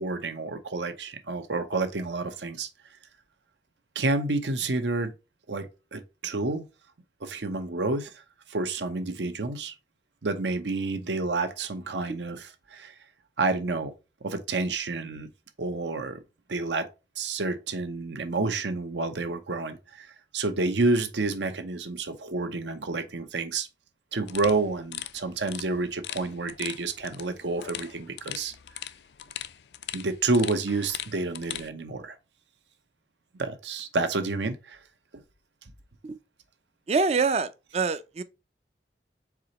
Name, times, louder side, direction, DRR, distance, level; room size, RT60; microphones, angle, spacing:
voice 1, 0.0-2.7 3.9-5.1 5.5-6.6 7.2-8.1 8.5-9.7 10.2-12.9 13.4-13.9 14.2-15.3 15.6-16.2 16.5-16.9 17.2-20.1 20.3-23.7 24.1-28.5 29.9-32.2 33.4-34.8, right 3 dB, 85° right, 0.9 m, -29 dB
sound 1, 24.3-31.7, left 11 dB, 75° left, 0.4 m, -40 dB
voice 2, 36.9-38.2, right 4 dB, 35° right, 0.4 m, -25 dB
4.8 x 3.8 x 2.9 m
head